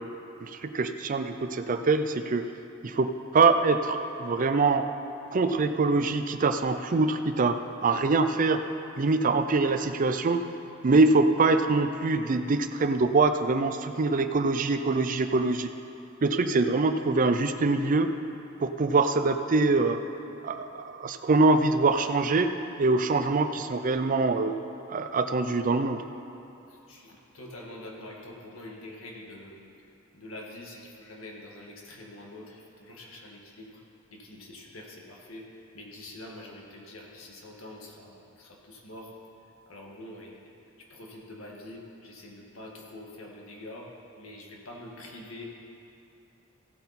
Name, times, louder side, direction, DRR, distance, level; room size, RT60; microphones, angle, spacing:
voice 1, 0.4-2.5 2.8-4.9 5.3-8.6 9.0-10.5 10.8-15.7 16.2-18.1 18.6-20.0 20.4-24.5 24.9-26.0, right 3 dB, 40° right, 9 dB, 0.5 m, -24 dB
voice 2, 26.7-29.9 30.1-33.8 34.1-39.1 39.7-40.5 40.8-45.4, left 1 dB, 80° left, -1 dB, 1.7 m, -45 dB
16.0 x 8.0 x 4.2 m, 2.8 s
head